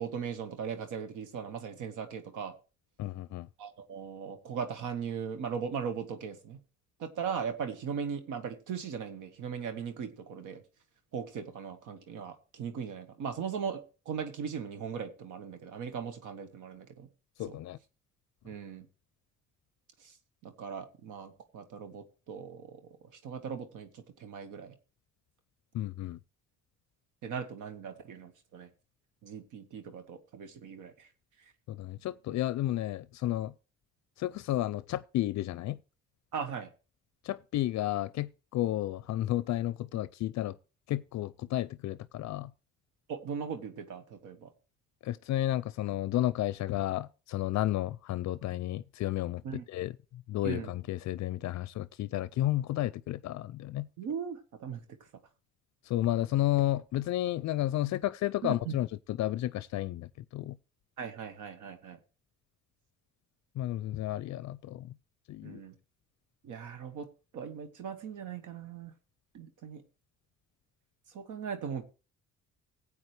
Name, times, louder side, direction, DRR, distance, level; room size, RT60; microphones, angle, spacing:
voice 1, 0.0-2.5 3.6-6.6 7.0-10.6 11.1-13.8 14.0-17.1 17.4-17.6 18.4-18.8 20.4-22.8 23.2-24.7 27.2-28.7 29.2-31.1 36.3-36.7 43.1-44.5 49.4-49.6 50.4-50.7 54.0-54.8 58.4-58.7 61.0-62.0 65.4-65.7 66.4-67.1 67.3-68.9 69.3-69.8 71.1-71.8, right 7 dB, 85° right, 1.4 m, -38 dB
voice 2, 3.0-3.5 17.4-17.8 25.7-26.2 31.7-33.5 34.2-35.8 37.2-40.6 40.9-42.5 45.0-49.9 50.3-53.9 55.9-60.6 63.6-64.9 65.3-65.6, left 14 dB, 65° left, 0.5 m, -32 dB
15.0 x 8.6 x 3.3 m
cardioid pair, 90°, 30 cm